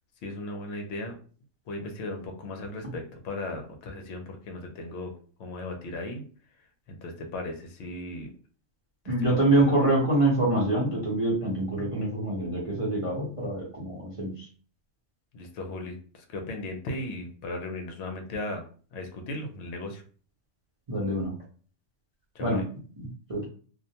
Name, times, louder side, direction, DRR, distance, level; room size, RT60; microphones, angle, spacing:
voice 1, 0.2-1.1 1.7-6.2 6.9-8.3 9.0-9.9 15.3-18.6 18.9-20.0 22.3-22.6, left 2 dB, 65° left, 4 dB, 0.8 m, -37 dB
voice 2, 9.1-14.5 20.9-21.3 22.4-22.6 23.3-23.4, right 2 dB, 35° right, -6 dB, 0.6 m, -25 dB
2.4 x 2.1 x 2.7 m, 0.41 s
omnidirectional pair, 1.4 m